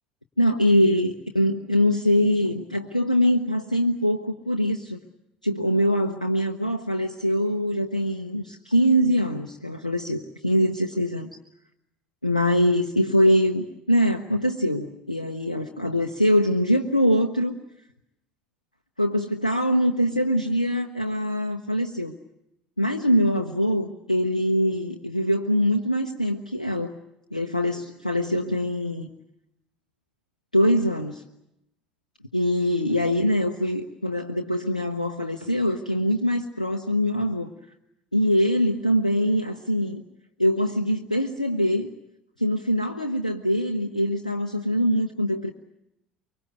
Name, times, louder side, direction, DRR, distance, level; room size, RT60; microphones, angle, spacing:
voice 1, 0.4-5.0 5.4-11.3 12.2-17.5 19.0-22.2 22.8-26.9 27.3-29.1 30.5-31.2 32.3-37.5 38.1-40.0 40.4-41.9 42.4-45.5, equal, 90° left, 4 dB, 0.9 m, -23 dB
24.5 x 24.0 x 8.1 m, 0.84 s
figure-of-eight pair, 65°, 4 cm